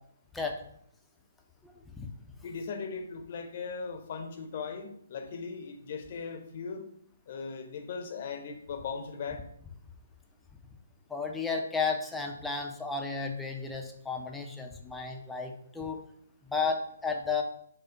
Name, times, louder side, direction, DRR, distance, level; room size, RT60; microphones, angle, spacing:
voice 1, 1.6-2.1 11.1-16.0 16.4-17.4, left 4 dB, 5° left, 2 dB, 0.5 m, -33 dB
voice 2, 2.4-6.9 7.3-9.4, left 5 dB, 45° left, 5 dB, 0.7 m, -38 dB
5.0 x 2.0 x 4.6 m, 0.68 s
figure-of-eight pair, 135°, 0 cm